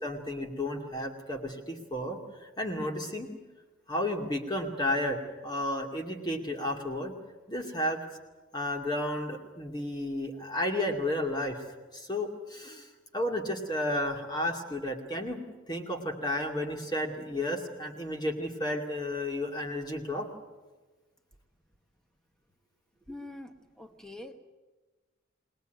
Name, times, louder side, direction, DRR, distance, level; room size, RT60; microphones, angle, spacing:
voice 1, 0.0-3.3 3.9-7.2 7.5-8.0 8.5-11.6 11.9-15.4 15.7-20.3, left 1 dB, 20° left, 3 dB, 2.4 m, -32 dB
voice 2, 23.1-24.4, left 1 dB, 5° left, 7 dB, 1.1 m, -44 dB
21.0 x 20.0 x 9.2 m, 1.3 s
head